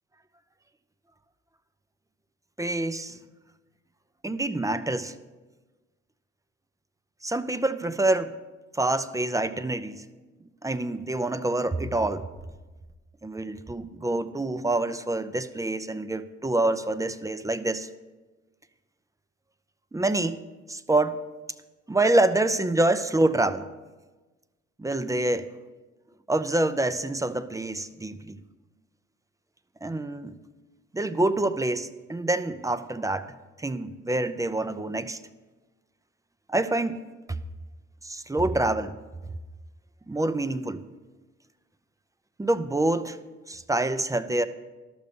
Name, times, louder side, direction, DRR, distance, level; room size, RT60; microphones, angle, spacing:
voice 1, 2.6-3.2 4.2-5.1 7.2-8.4 8.7-10.0 10.6-12.3 13.2-17.9 19.9-20.4 20.7-21.2 21.9-23.7 24.8-25.5 26.3-28.4 29.8-30.4 30.9-35.2 36.5-37.0 38.0-39.0 40.1-40.8 42.4-43.2 43.5-44.5, right 2 dB, 10° right, 11 dB, 0.5 m, -26 dB
12.0 x 6.6 x 5.1 m, 1.2 s
cardioid pair, 90°, 30 cm